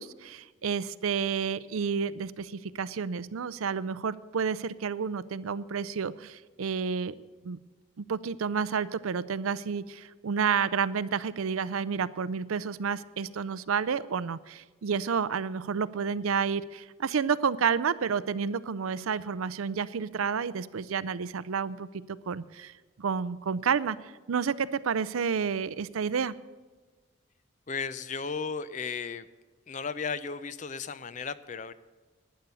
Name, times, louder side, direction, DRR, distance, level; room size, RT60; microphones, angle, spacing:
voice 1, 0.0-7.2 7.4-7.6 8.0-21.9 22.3-26.3, right 6 dB, 90° right, 17 dB, 0.5 m, -30 dB
voice 2, 27.7-29.3 29.7-31.7, left 5 dB, 35° left, 15 dB, 0.5 m, -35 dB
11.5 x 9.5 x 6.9 m, 1.4 s
head